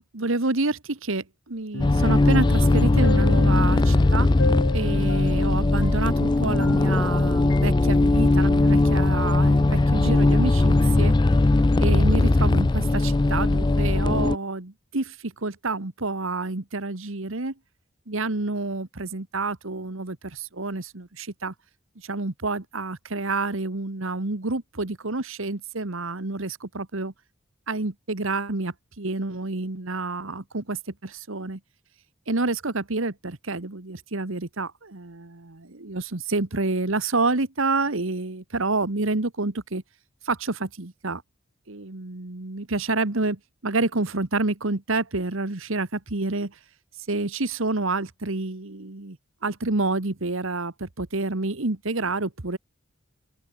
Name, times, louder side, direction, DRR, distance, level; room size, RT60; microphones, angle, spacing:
voice 1, 0.0-4.3 4.7-11.1 11.8-17.5 18.1-21.5 22.0-27.1 27.7-31.6 32.3-39.8 40.2-41.2 41.7-46.5 47.1-49.2 49.4-52.6, right 3 dB, 70° right, 1.5 m, -28 dB
sound 1, 1.7-7.2 7.5-7.7, left 2 dB, 85° left, 3.6 m, -34 dB
sound 2, 1.8-14.4, left 2 dB, 20° left, 0.3 m, -19 dB
open air
head